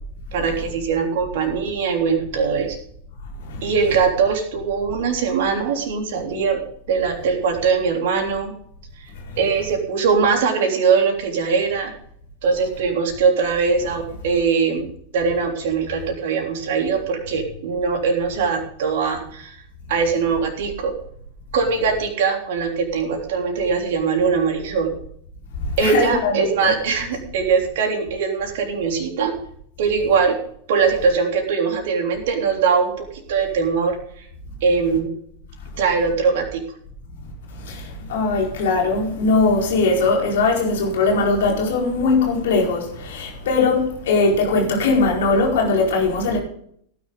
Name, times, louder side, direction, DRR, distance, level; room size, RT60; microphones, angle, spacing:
voice 1, 0.3-2.8 3.6-6.6 6.9-8.5 9.0-9.1 9.4-11.9 12.4-14.9 15.1-19.6 19.9-20.9 21.5-24.9 25.8-29.3 29.8-30.4 30.7-34.3 34.6-35.1 35.8-36.6, right 5 dB, 55° right, 3.4 m, -21 dB
voice 2, 25.8-26.7 37.7-46.4, left 3 dB, 60° left, 4.6 m, -20 dB
17.5 x 10.0 x 3.9 m
figure-of-eight pair, 90°, 0 cm